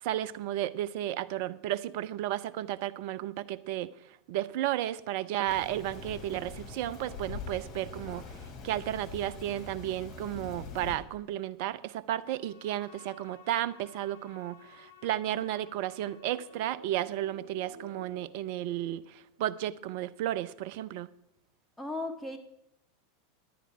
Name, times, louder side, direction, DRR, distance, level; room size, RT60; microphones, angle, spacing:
voice 1, 0.0-3.9 4.3-8.2 8.6-21.1, right 13 dB, 50° right, 18 dB, 0.5 m, -33 dB
Rain, 5.5-11.0, left 5 dB, 40° left, 3.0 m, -43 dB
Bowed string instrument, 12.1-16.9, left 7 dB, 80° left, 1.5 m, -56 dB
sound 1, 15.6-19.4, right 1 dB, 85° right, 0.9 m, -52 dB
voice 2, 21.8-22.4, left 2 dB, 5° left, 2 dB, 1.4 m, -36 dB
11.0 x 10.5 x 4.8 m, 0.76 s
figure-of-eight pair, 85°, 0 cm